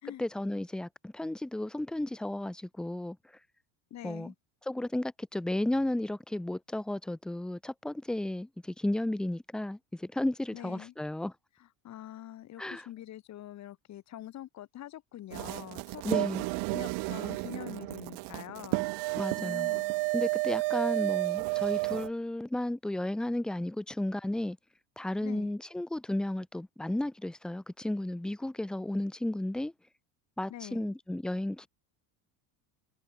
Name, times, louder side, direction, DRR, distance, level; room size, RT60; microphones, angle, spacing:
voice 1, 0.2-3.2 4.0-4.3 4.7-11.3 12.6-12.9 16.0-16.5 19.2-19.7 20.1-24.6 25.0-29.7 30.4-31.7, left 1 dB, ahead, 0.5 m, -33 dB
voice 2, 3.9-4.3 10.5-10.9 11.6-16.0 16.7-18.8 19.4-20.0 25.2-25.6 30.5-30.9, left 13 dB, 35° left, 3.5 m, -45 dB
sound 1, 15.3-22.1, right 28 dB, 60° right, 1.4 m, -31 dB
cardioid pair, 165°, 45 cm